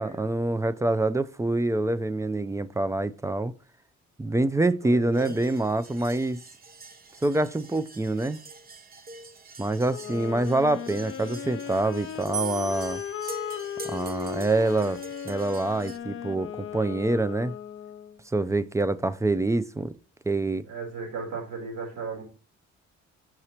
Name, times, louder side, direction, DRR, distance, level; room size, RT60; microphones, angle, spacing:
voice 1, 0.0-3.5 4.2-6.4 7.2-8.4 9.6-13.0 13.9-15.0 15.2-17.6 18.3-19.9 20.3-20.6, right 2 dB, 10° right, 0.3 m, -26 dB
voice 2, 4.8-5.4 20.6-22.2, right 5 dB, 75° right, 3.5 m, -36 dB
sound 1, 5.1-16.0, right 3 dB, 30° right, 0.8 m, -46 dB
Wind instrument woodwind instrument, 9.9-18.2, left 9 dB, 45° left, 0.5 m, -37 dB
sound 2, 12.3-15.6, right 5 dB, 50° right, 2.3 m, -39 dB
6.3 x 5.9 x 2.8 m
cardioid pair, 90°, 30 cm